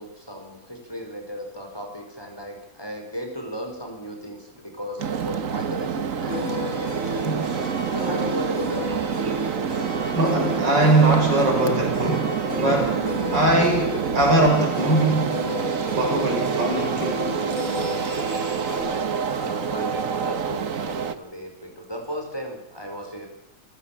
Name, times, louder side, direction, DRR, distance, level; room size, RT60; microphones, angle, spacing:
voice 1, 0.0-9.1 17.7-23.3, equal, 10° left, 2 dB, 4.9 m, -36 dB
sound 1, 5.0-21.2, right 7 dB, 50° right, 1.5 m, -27 dB
sound 2, 6.3-18.8, left 1 dB, 90° left, 7.7 m, -32 dB
voice 2, 10.1-15.5 15.9-17.3, right 2 dB, 75° right, 2 dB, 6.9 m, -21 dB
29.0 x 15.0 x 7.4 m, 0.84 s
omnidirectional pair, 1.9 m